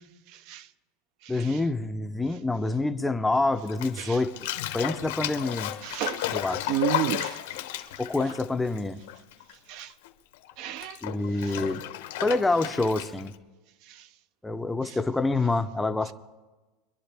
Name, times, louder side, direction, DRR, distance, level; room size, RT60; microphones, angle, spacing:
voice 1, 0.3-0.7 1.2-1.6 4.0-4.2 5.8-6.4 6.7-7.4 9.7-9.9 10.6-11.0 13.9-14.1 14.9-15.0, right 12 dB, 50° right, 0.4 m, -32 dB
voice 2, 1.3-4.3 4.7-5.7 6.3-6.7 8.0-9.0 11.0-11.8 12.2-13.3 14.4-16.1, left 2 dB, 5° left, 0.5 m, -27 dB
Bathtub (filling or washing), 3.7-9.5 9.8-13.3, left 13 dB, 80° left, 1.0 m, -33 dB
25.0 x 11.0 x 3.4 m
supercardioid pair, 165°, 0 cm